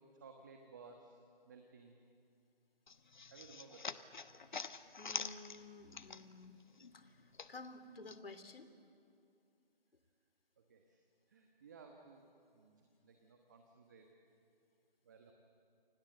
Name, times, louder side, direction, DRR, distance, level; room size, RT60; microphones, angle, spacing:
voice 1, 0.2-1.1 1.4-2.0 3.3-3.9 10.7-11.0 11.3-12.3 12.5-14.1 15.0-15.3, right 4 dB, 20° right, 3 dB, 1.3 m, -58 dB
sound 1, 2.9-6.5 6.8-8.2, left 5 dB, 50° left, 1.1 m, -46 dB
voice 2, 5.0-6.6 6.9-8.7, left 3 dB, 70° left, 9 dB, 3.1 m, -53 dB
29.0 x 26.0 x 7.8 m, 2.5 s
figure-of-eight pair, 165°, 30 cm